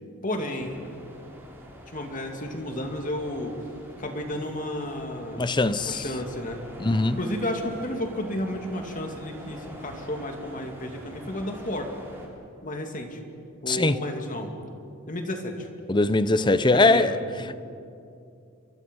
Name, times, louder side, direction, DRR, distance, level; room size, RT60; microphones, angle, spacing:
voice 1, 0.2-0.9 1.9-3.6 4.0-5.4 5.8-6.6 7.2-11.9 12.6-13.2 13.6-14.5 15.1-15.7 16.7-17.6, left 1 dB, 40° left, 2.7 m, -32 dB
sound 1, 0.6-12.3, equal, 10° right, 4.2 m, -45 dB
voice 2, 5.4-6.0 6.8-7.2 13.7-14.0 15.9-17.1, left 2 dB, 20° left, 0.7 m, -21 dB
29.5 x 24.0 x 5.5 m
head